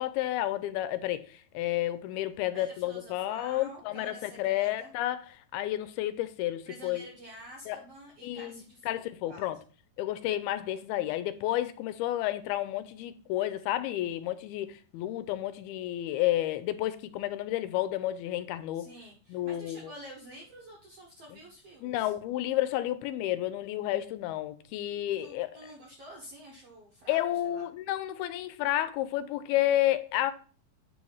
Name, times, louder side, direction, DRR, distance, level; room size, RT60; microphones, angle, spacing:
voice 1, 0.0-5.3 5.5-7.1 7.7-7.8 8.2-8.6 8.9-9.6 10.0-18.9 19.3-19.9 21.8-25.6 27.1-30.3, left 14 dB, 85° left, 2.5 m, -31 dB
voice 2, 2.5-4.9 6.6-9.5 18.7-22.1 25.2-27.7, right 1 dB, 65° right, 1.6 m, -49 dB
9.4 x 3.2 x 5.4 m
omnidirectional pair, 4.4 m